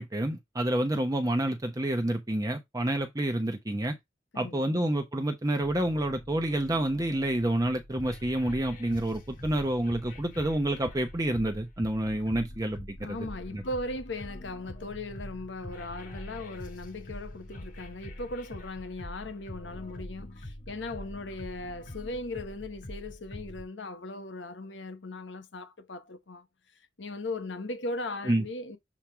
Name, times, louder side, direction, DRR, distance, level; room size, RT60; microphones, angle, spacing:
voice 1, 0.0-3.9 4.3-13.2 13.5-13.6 28.2-28.4, right 1 dB, 20° right, 0.8 m, -28 dB
voice 2, 4.3-4.8 13.0-26.5 27.0-28.8, left 2 dB, 85° left, 1.1 m, -38 dB
sound 1, 5.6-23.6, left 1 dB, 50° left, 1.5 m, -44 dB
7.2 x 3.5 x 4.5 m
head